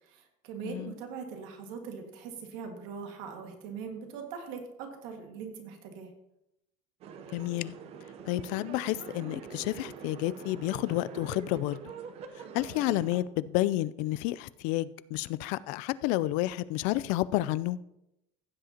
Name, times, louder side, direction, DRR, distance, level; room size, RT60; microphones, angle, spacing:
voice 1, 0.0-6.1, right 6 dB, 75° right, 4 dB, 1.8 m, -41 dB
sound 1, 7.0-13.2, right 7 dB, 50° right, 0.8 m, -44 dB
voice 2, 7.3-7.7 8.3-11.8 12.5-17.8, left 16 dB, 70° left, 18 dB, 0.4 m, -30 dB
15.5 x 7.6 x 2.8 m, 0.87 s
cardioid pair, 125°, 13 cm